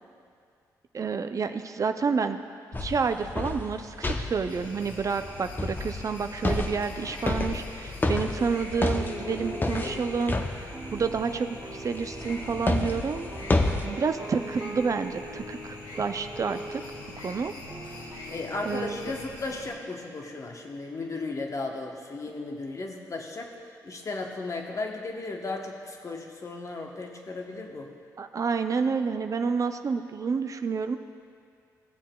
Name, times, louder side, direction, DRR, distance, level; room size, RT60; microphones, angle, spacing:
voice 1, 0.9-2.4 2.8-13.3 13.8-16.8 17.2-17.5 18.6-19.1 28.2-31.0, right 5 dB, 45° right, 8 dB, 0.4 m, -29 dB
sound 1, 2.7-11.4 11.9-13.9, left 2 dB, 25° left, 0.7 m, -31 dB
sound 2, 4.5-19.7, left 2 dB, 70° left, 1.3 m, -43 dB
sound 3, 8.9-19.2, right 1 dB, 30° right, 1.0 m, -42 dB
voice 2, 18.3-23.5 23.8-27.9, left 3 dB, 40° left, 2 dB, 1.0 m, -35 dB
15.5 x 7.2 x 2.3 m, 2.3 s
supercardioid pair, 50°, 8 cm